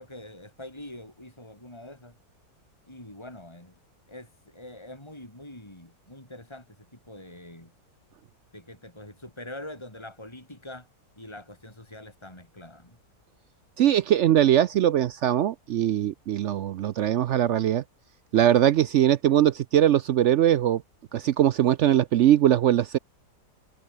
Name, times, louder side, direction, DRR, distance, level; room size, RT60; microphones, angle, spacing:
voice 1, 0.0-2.1 2.9-3.7 4.1-6.7 7.1-7.7 8.5-10.9 11.2-13.0, left 1 dB, 15° left, 5.1 m, -44 dB
voice 2, 13.8-17.8 18.3-20.8 21.1-23.0, right 11 dB, 70° right, 0.7 m, -21 dB
omnidirectional pair, 1.7 m